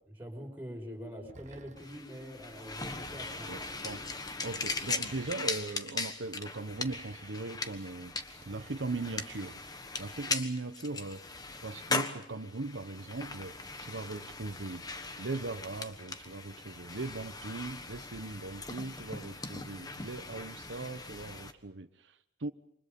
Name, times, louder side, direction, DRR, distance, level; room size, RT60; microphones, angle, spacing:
voice 1, 0.2-4.0, equal, 10° right, 0 dB, 5.5 m, -45 dB
sound 1, 1.3-2.1 3.0-3.9 4.9-5.8 6.7-7.6 8.4-9.3, right 3 dB, 40° right, 1.1 m, -54 dB
sound 2, 1.8-21.5, left 3 dB, 20° left, 1.3 m, -39 dB
voice 2, 3.5-4.0 4.4-8.1 8.4-9.6 10.0-11.2 11.6-14.8 15.2-22.5, right 3 dB, 75° right, 8 dB, 1.0 m, -39 dB
28.0 x 25.0 x 5.4 m, 0.75 s
head